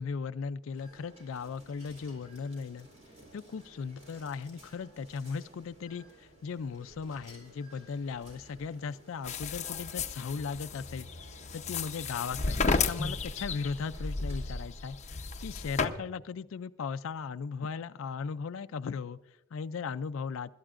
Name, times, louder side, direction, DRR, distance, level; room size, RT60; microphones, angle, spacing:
voice 1, 0.0-2.9 3.3-11.1 11.5-20.5, left 5 dB, 65° left, 10 dB, 0.4 m, -37 dB
sound 1, 0.7-14.5, right 1 dB, 30° right, 4.2 m, -56 dB
sound 2, 9.2-15.9, left 4 dB, 35° left, 0.8 m, -33 dB
26.5 x 12.5 x 2.5 m, 1.0 s
head